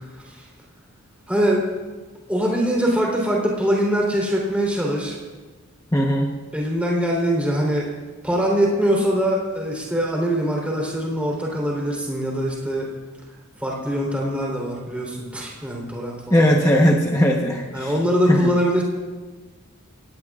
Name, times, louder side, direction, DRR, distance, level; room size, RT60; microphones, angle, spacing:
voice 1, 1.3-1.6 2.3-5.2 6.5-7.9 8.2-12.9 13.6-16.6 17.7-18.8, equal, 5° right, -3 dB, 3.6 m, -23 dB
voice 2, 5.9-6.3 16.3-17.9 18.3-18.5, equal, 15° left, -1 dB, 1.0 m, -18 dB
25.5 x 18.0 x 2.5 m, 1.4 s
head